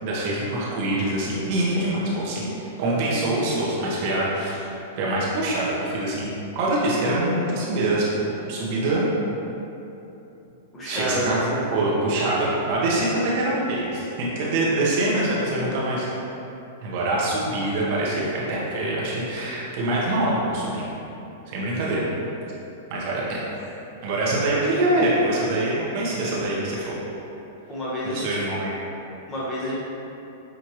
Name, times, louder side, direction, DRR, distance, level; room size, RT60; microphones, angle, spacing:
voice 1, 0.0-2.5 2.8-4.7 5.0-9.1 10.8-11.4 11.7-16.1 16.8-20.9 21.5-22.1 22.9-23.5 24.0-27.0 28.0-28.7, right 1 dB, 55° right, -6 dB, 1.0 m, -24 dB
voice 2, 10.7-11.4 27.7-28.5 29.3-29.8, equal, 20° left, -7 dB, 1.2 m, -29 dB
6.3 x 2.6 x 3.0 m, 3.0 s
hypercardioid pair, 130°, 0 cm